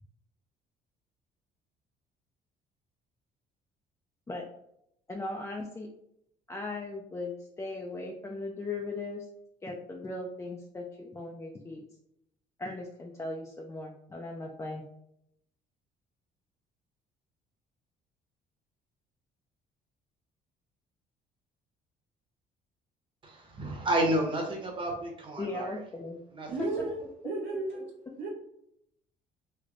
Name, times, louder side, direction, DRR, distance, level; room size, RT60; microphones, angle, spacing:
voice 1, 5.1-5.9 6.5-9.3 9.6-11.8 12.6-14.8 25.4-26.2 26.6-27.3, left 2 dB, 15° left, 0 dB, 0.4 m, -38 dB
voice 2, 23.2-25.7 26.3-26.5, right 1 dB, 30° right, 0 dB, 1.0 m, -30 dB
voice 3, 26.5-28.3, right 3 dB, 65° right, -4 dB, 0.9 m, -35 dB
3.3 x 2.1 x 3.7 m, 0.76 s
cardioid pair, 110°, 17 cm